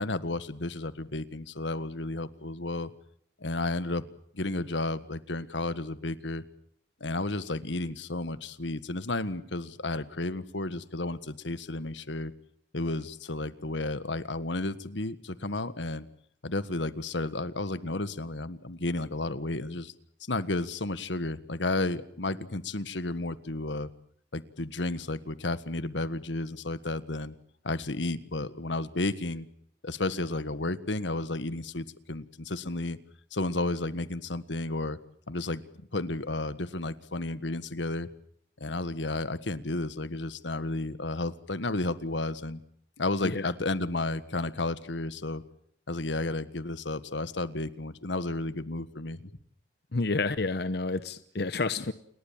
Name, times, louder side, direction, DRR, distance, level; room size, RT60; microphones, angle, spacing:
voice 1, 0.0-2.9 3.4-4.0 4.3-6.4 7.0-12.3 12.7-16.1 16.4-19.9 20.3-23.9 24.3-27.3 27.6-29.5 29.8-33.0 33.3-35.0 35.3-35.6 35.9-38.1 38.6-42.6 43.0-45.4 45.9-49.3, left 2 dB, 85° left, 14 dB, 1.6 m, -32 dB
voice 2, 49.9-51.9, left 3 dB, 60° left, 13 dB, 1.0 m, -29 dB
29.0 x 21.0 x 7.4 m, 0.65 s
head